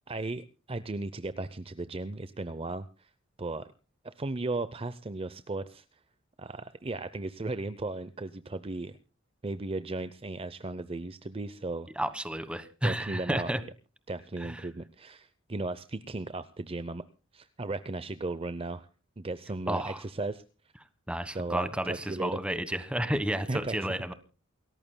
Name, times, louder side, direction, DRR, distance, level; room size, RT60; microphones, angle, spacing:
voice 1, 0.1-3.1 3.4-3.7 4.0-5.8 6.4-9.0 9.4-11.9 12.8-13.5 14.1-17.0 17.3-18.9 19.2-20.4 21.3-22.4 23.5-23.9, right 2 dB, 30° right, 13 dB, 0.6 m, -36 dB
voice 2, 11.9-13.6 14.4-14.6 19.7-20.0 21.1-24.1, right 1 dB, 5° right, 12 dB, 1.3 m, -31 dB
28.5 x 14.5 x 2.2 m, 0.34 s
head